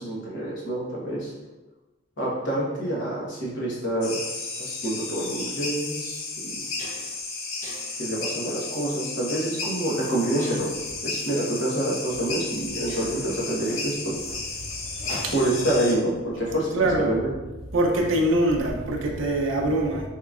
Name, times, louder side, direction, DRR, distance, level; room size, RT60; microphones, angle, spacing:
voice 1, 0.0-1.3 2.2-4.2 4.6-6.7 8.0-10.7 11.0-14.2 15.3-17.3, right 1 dB, 60° left, -6 dB, 1.1 m, -27 dB
sound 1, 4.0-15.9, left 3 dB, 85° left, 0.6 m, -33 dB
sound 2, 5.3-5.5 6.1-6.2 6.5-7.2 7.6-8.1 8.7-9.0 10.4-10.9 12.0-12.1 12.5-12.6 12.9-15.6, left 1 dB, 35° left, 0.8 m, -42 dB
voice 2, 16.7-17.2 17.7-20.0, right 1 dB, 75° right, 1 dB, 0.5 m, -23 dB
3.8 x 3.0 x 2.3 m, 1.1 s
head